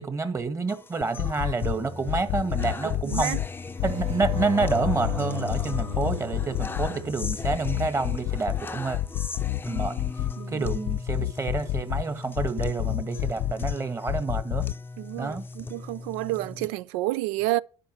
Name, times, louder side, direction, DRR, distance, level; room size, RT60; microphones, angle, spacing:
voice 1, 0.0-3.4 3.8-9.0 9.7-10.0 10.5-14.6 15.2-15.5, right 4 dB, 25° right, 1.9 m, -28 dB
sound 1, 0.7-16.7, left 3 dB, 15° left, 0.6 m, -39 dB
sound 2, 1.0-1.7 2.1-3.5 3.8-5.2 5.5-6.9 7.2-8.6 8.9-10.3 10.6-12.0 12.4-13.7 14.1-14.7, left 15 dB, 70° left, 0.4 m, -28 dB
voice 2, 2.8-3.4 10.4-10.6 15.0-17.6, right 18 dB, 85° right, 0.5 m, -30 dB
sound 3, 3.8-8.4 11.7-12.2, left 4 dB, 55° right, 2.7 m, -36 dB
11.5 x 5.3 x 7.6 m
supercardioid pair, 95°, 12 cm